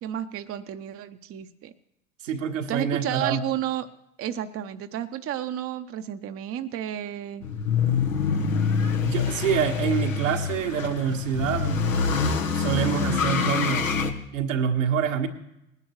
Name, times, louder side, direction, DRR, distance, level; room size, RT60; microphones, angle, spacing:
voice 1, 0.0-1.7 2.7-3.9 4.2-7.4, right 10 dB, 35° right, 8 dB, 0.8 m, -31 dB
voice 2, 2.2-3.4 9.0-11.8 12.5-14.0 14.3-15.3, right 7 dB, 80° right, 2 dB, 1.5 m, -26 dB
sound 1, 7.4-14.1, left 5 dB, 85° left, 1.2 m, -25 dB
20.0 x 10.5 x 3.1 m, 0.83 s
hypercardioid pair, 75°, 38 cm